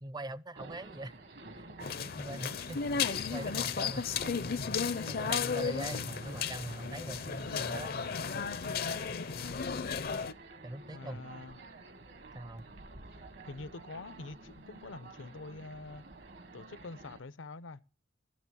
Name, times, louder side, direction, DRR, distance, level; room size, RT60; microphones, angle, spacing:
voice 1, 0.0-1.2 1.6-1.7 2.0-2.8 3.1-4.1 5.1-7.9 10.6-11.2 12.3-12.7, right 1 dB, 20° right, 0.6 m, -42 dB
sound 1, 0.6-17.2, right 2 dB, 60° right, 1.5 m, -51 dB
sound 2, 1.8-10.3, left 6 dB, 50° left, 0.6 m, -34 dB
voice 2, 10.9-11.6 13.4-16.0 16.5-17.8, left 3 dB, 85° left, 0.8 m, -46 dB
14.5 x 6.7 x 8.4 m
head